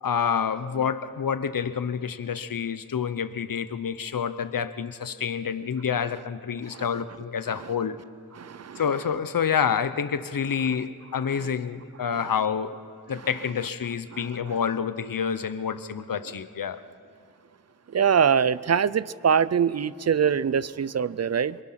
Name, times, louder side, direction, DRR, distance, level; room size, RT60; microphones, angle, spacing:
voice 1, 0.0-8.0 8.8-12.7 13.1-16.8, left 7 dB, 60° left, 13 dB, 0.9 m, -28 dB
voice 2, 8.4-8.8 11.3-11.5 12.1-12.2 14.1-14.6 17.9-21.6, right 7 dB, 45° right, 19 dB, 0.5 m, -24 dB
26.5 x 23.5 x 5.8 m, 2.6 s
wide cardioid pair, 105°, 37 cm